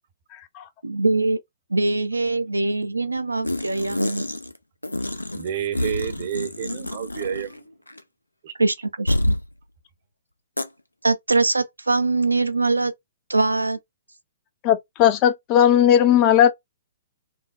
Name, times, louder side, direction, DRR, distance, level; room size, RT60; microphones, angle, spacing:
voice 1, 0.8-1.4 1.7-4.3 8.6-9.3 11.0-12.9 13.3-13.8, right 3 dB, 85° right, 0.4 m, -22 dB
sound 1, 3.4-4.6 4.8-7.6 7.9-8.0 9.1-9.5 10.6-10.7, left 1 dB, 90° left, 0.4 m, -27 dB
voice 2, 5.3-7.6 8.4-8.5, right 10 dB, 45° right, 0.7 m, -30 dB
voice 3, 14.6-16.5, left 10 dB, 30° left, 0.5 m, -17 dB
3.1 x 2.0 x 2.4 m
figure-of-eight pair, 115°, 0 cm